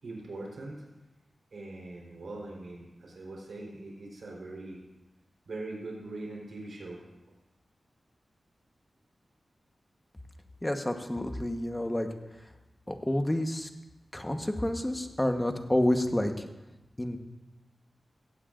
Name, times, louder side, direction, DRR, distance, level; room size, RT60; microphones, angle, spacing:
voice 1, 0.0-0.8 1.5-4.8 5.5-7.0 7.3-7.4, right 2 dB, 80° right, -2 dB, 3.9 m, -41 dB
voice 2, 10.6-12.1 12.9-13.7 14.1-16.4 17.0-17.2, left 1 dB, 15° left, 5 dB, 1.2 m, -29 dB
16.5 x 15.5 x 2.6 m, 1.1 s
wide cardioid pair, 80°, 0 cm